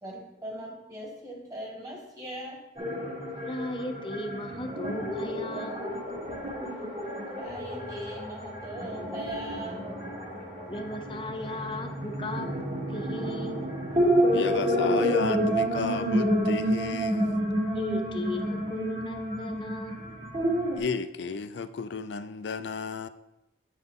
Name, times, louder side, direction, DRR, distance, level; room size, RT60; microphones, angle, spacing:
voice 1, 0.0-2.6 6.6-6.7 7.3-9.8 11.3-11.6, right 1 dB, 20° right, 1.6 m, -40 dB
sound 1, 2.8-20.8, equal, 35° right, 1.7 m, -29 dB
voice 2, 3.4-5.7 10.7-12.6 12.9-13.7 17.7-20.1, left 1 dB, 30° left, 0.6 m, -36 dB
voice 3, 14.3-17.4 20.8-23.1, left 5 dB, 80° left, 0.5 m, -34 dB
8.9 x 6.1 x 3.6 m
head